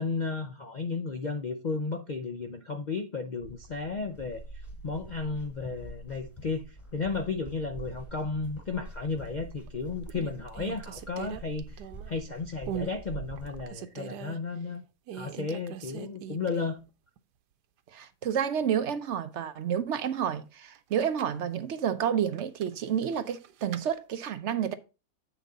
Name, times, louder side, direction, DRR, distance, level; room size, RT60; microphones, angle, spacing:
voice 1, 0.0-4.4 4.8-14.8 15.1-16.8, left 4 dB, 75° left, 0.4 m, -33 dB
sound 1, 3.4-13.7, right 3 dB, 10° left, 3.0 m, -45 dB
sound 2, 9.3-9.7 10.1-12.2 12.6-13.0 13.4-14.4 15.1-16.8 17.2-17.3 20.7-21.4 22.3-23.9, right 9 dB, 85° right, 1.3 m, -41 dB
voice 2, 17.9-24.7, right 8 dB, 60° right, 0.8 m, -30 dB
8.0 x 6.0 x 3.9 m
omnidirectional pair, 1.7 m